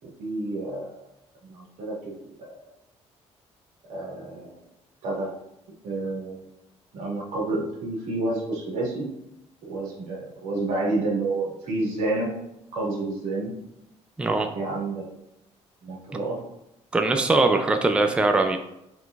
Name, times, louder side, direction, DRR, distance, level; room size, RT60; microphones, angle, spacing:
voice 1, 0.0-1.0 1.5-2.5 3.9-4.6 5.0-5.3 5.8-6.4 6.9-9.0 9.6-12.3 12.7-13.5 14.5-15.0 15.8-16.4, right 2 dB, 90° right, -4 dB, 1.7 m, -29 dB
voice 2, 14.2-14.5 16.9-18.6, right 3 dB, 10° right, 6 dB, 0.4 m, -21 dB
5.6 x 3.8 x 2.4 m, 0.84 s
cardioid pair, 130°, 12 cm